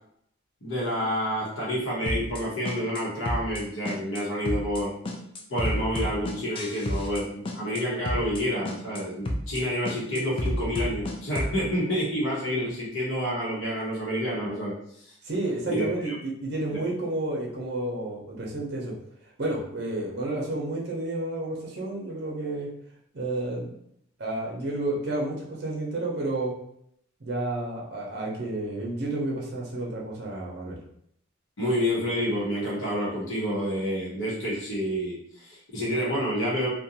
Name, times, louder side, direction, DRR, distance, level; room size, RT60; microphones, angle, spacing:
voice 1, 0.6-4.9 5.5-15.1 15.7-16.1 16.7-16.8 31.6-36.7, equal, 85° left, -6 dB, 0.9 m, -29 dB
sound 1, 2.1-2.4 2.7-3.6 3.9-4.2 4.5-4.8 5.1-7.2 7.5-8.4 8.7-9.0 9.3-9.6 9.9-11.6, left 1 dB, 25° left, 0.3 m, -30 dB
voice 2, 15.2-18.9 19.4-22.7 23.1-23.7 24.2-26.5 27.2-30.8, right 2 dB, 55° right, -2 dB, 0.6 m, -31 dB
2.5 x 2.1 x 2.8 m, 0.71 s
head